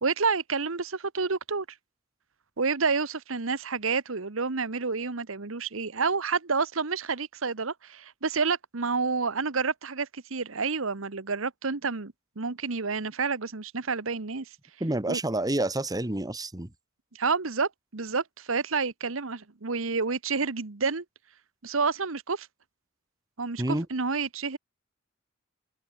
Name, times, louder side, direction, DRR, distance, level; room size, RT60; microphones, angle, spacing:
voice 1, 0.0-1.6 2.6-14.4 15.1-15.2 17.1-21.0 21.6-22.5 23.4-24.6, right 4 dB, 70° right, 1.2 m, -29 dB
voice 2, 14.8-16.7 23.6-23.9, right 1 dB, 20° right, 1.4 m, -28 dB
head